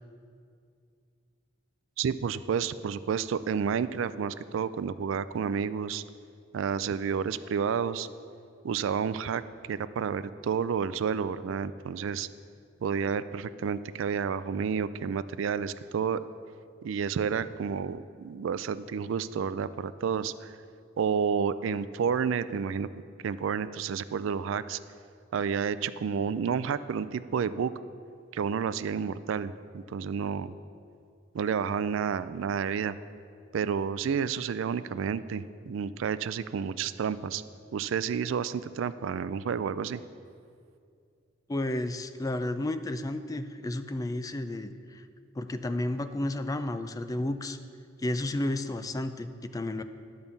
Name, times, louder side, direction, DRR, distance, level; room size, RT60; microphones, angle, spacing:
voice 1, 2.0-6.0 6.5-8.1 8.6-9.4 9.7-12.3 12.8-16.2 16.8-20.6 21.0-22.9 23.2-24.8 25.3-27.7 28.3-30.5 31.3-33.0 33.5-37.4 37.7-40.0, right 6 dB, 70° right, 15 dB, 0.3 m, -30 dB
voice 2, 41.5-45.0 45.4-47.6 48.0-49.8, left 1 dB, 20° left, 9 dB, 0.3 m, -32 dB
11.0 x 5.3 x 7.0 m, 2.3 s
head